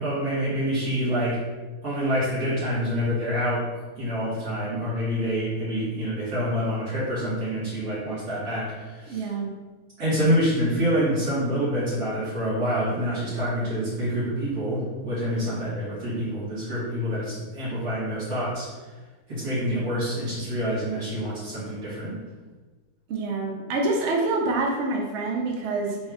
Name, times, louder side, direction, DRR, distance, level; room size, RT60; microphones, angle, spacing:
voice 1, 0.0-1.4 1.8-9.3 10.0-18.7 19.3-22.2, equal, 80° right, -11 dB, 2.2 m, -27 dB
voice 2, 9.1-9.5 23.1-26.0, right 3 dB, 60° right, 0 dB, 0.9 m, -26 dB
4.2 x 2.4 x 4.6 m, 1.3 s
omnidirectional pair, 1.6 m